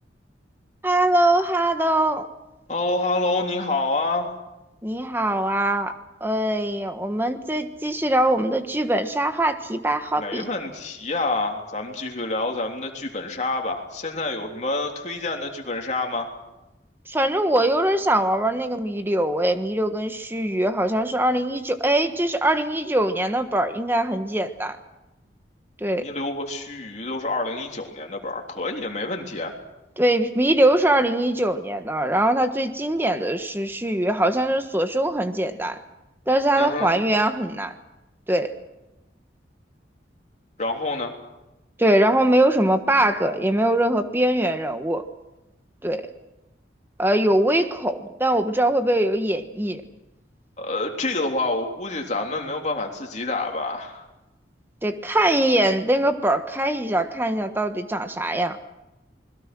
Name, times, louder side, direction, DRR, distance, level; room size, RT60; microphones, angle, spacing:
voice 1, 0.8-2.3 4.8-5.9 6.2-10.5 17.1-24.8 25.8-26.1 30.0-35.8 36.3-37.7 38.3-38.5 41.8-45.0 45.8-46.1 47.0-49.8 54.8-58.6, right 1 dB, 10° right, 8 dB, 1.4 m, -22 dB
voice 2, 2.7-4.3 10.2-16.3 26.0-29.5 36.6-36.9 40.6-41.1 50.6-54.1, left 2 dB, 40° left, 2 dB, 3.4 m, -27 dB
28.5 x 21.5 x 6.2 m, 0.99 s
head